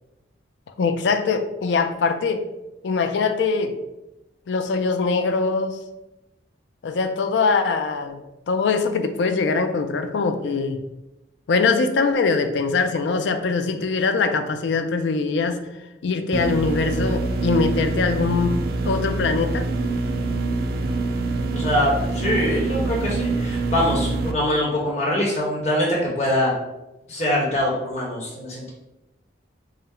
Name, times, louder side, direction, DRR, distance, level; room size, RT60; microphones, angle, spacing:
voice 1, 0.8-2.4 2.8-3.7 4.5-5.8 6.8-8.2 8.5-10.8 11.5-15.6 16.0-18.6 18.8-19.7, left 4 dB, 70° left, 8 dB, 0.4 m, -22 dB
sound 1, 16.3-24.3, right 3 dB, 50° right, 0.3 m, -25 dB
voice 2, 21.5-26.5 27.1-28.7, left 1 dB, 35° left, -4 dB, 1.0 m, -23 dB
3.7 x 2.1 x 4.3 m, 0.97 s
head